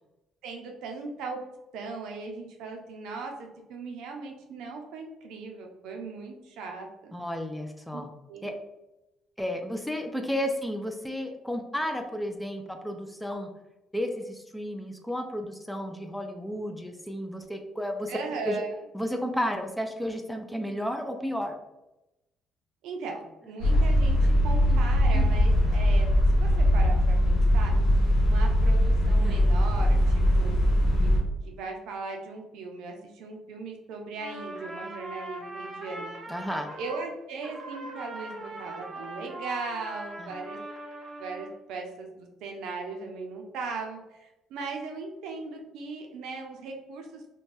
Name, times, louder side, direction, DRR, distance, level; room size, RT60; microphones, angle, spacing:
voice 1, 0.4-1.4 1.7-3.4 3.7-7.1 7.9-8.0 8.3-8.5 18.1-18.7 22.8-26.1 26.4-27.7 28.2-30.6 31.0-31.1 31.4-36.1 36.8-40.6 41.2-47.3, right 4 dB, 80° right, 2 dB, 0.5 m, -38 dB
voice 2, 7.1-8.1 8.4-8.5 9.4-13.5 13.9-18.1 18.5-18.6 18.9-21.6 24.7-24.8 25.1-25.3 29.0-29.5 36.3-36.7 40.2-40.3, equal, 5° left, 5 dB, 0.4 m, -32 dB
sound 1, 23.6-31.2, equal, 75° left, 0.9 m, -21 dB
Trumpet, 34.2-37.1 37.4-41.5, right 1 dB, 25° right, 0.7 m, -40 dB
2.6 x 2.2 x 3.1 m, 0.95 s
supercardioid pair, 75°, 0 cm